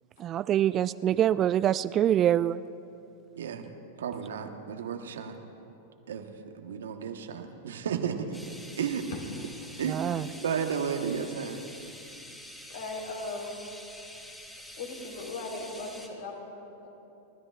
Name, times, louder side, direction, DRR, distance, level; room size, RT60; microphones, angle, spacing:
voice 1, 0.2-2.6 9.9-10.3, right 11 dB, 35° right, 16 dB, 0.3 m, -25 dB
voice 2, 3.4-3.7 4.0-5.4 6.1-6.3 6.5-8.4 8.8-9.1 9.8-10.1 10.4-11.6, right 7 dB, 70° right, 5 dB, 1.2 m, -33 dB
sound 1, 8.3-16.1, left 1 dB, 5° left, 3.0 m, -47 dB
voice 3, 9.1-10.1 12.7-13.6 14.5-16.9, left 2 dB, 70° left, -1 dB, 3.8 m, -39 dB
30.0 x 13.0 x 2.5 m, 2.8 s
figure-of-eight pair, 95°, 0 cm